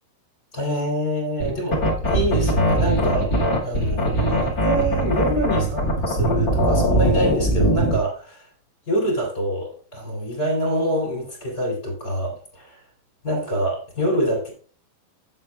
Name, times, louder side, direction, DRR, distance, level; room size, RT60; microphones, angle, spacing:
voice 1, 0.5-8.5 8.9-12.8 13.2-14.5, equal, 25° left, -2 dB, 3.0 m, -25 dB
Abstract Drilling Effect, 1.4-8.0, right 1 dB, 45° left, 1.2 m, -21 dB
8.7 x 7.3 x 3.4 m, 0.42 s
omnidirectional pair, 5.2 m